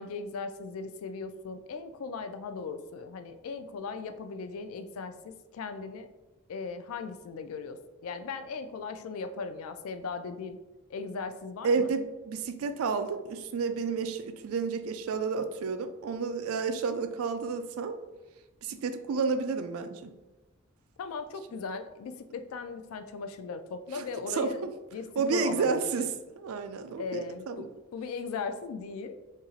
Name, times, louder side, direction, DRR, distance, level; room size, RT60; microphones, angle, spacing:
voice 1, 0.0-6.1 6.5-10.6 10.9-11.9 21.0-26.1 27.0-27.7 27.9-29.2, left 4 dB, 75° left, 9 dB, 0.3 m, -38 dB
voice 2, 11.6-18.0 18.6-20.1 23.9-24.0 24.3-24.7 25.2-27.7, right 5 dB, 80° right, 8 dB, 0.4 m, -31 dB
2.8 x 2.6 x 4.0 m, 1.1 s
head